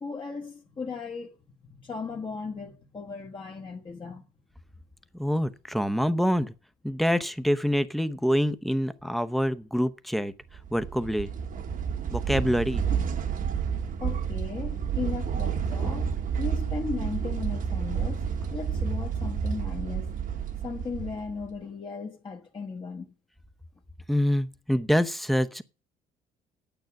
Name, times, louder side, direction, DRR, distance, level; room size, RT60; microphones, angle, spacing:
voice 1, 0.0-1.4 1.7-4.2 14.0-20.1 20.6-23.1, left 4 dB, 30° left, 1.4 m, -36 dB
voice 2, 5.2-6.5 6.8-10.3 10.7-11.3 12.1-12.8 24.1-25.6, equal, ahead, 0.8 m, -26 dB
sound 1, 10.5-21.6, right 7 dB, 55° right, 1.2 m, -30 dB
9.3 x 9.2 x 5.9 m
cardioid pair, 110°, 17 cm